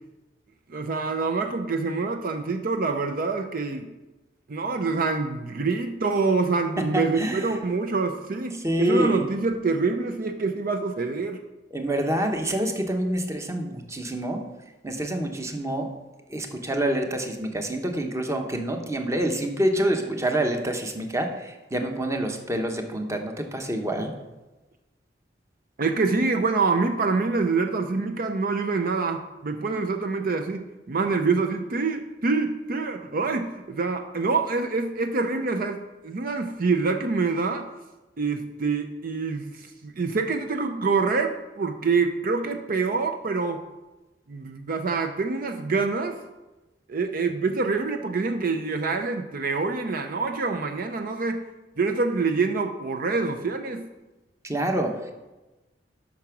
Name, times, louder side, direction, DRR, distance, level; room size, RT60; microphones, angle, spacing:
voice 1, 0.7-3.9 4.5-11.4 25.8-37.7 38.2-43.6 44.3-46.2 46.9-51.5 51.8-53.9, right 4 dB, 55° right, 6 dB, 0.6 m, -26 dB
voice 2, 6.8-7.5 8.6-9.2 11.7-14.4 14.8-15.9 16.3-24.1 54.4-55.1, right 1 dB, 15° right, 4 dB, 1.0 m, -27 dB
8.5 x 6.0 x 5.9 m, 1.1 s
head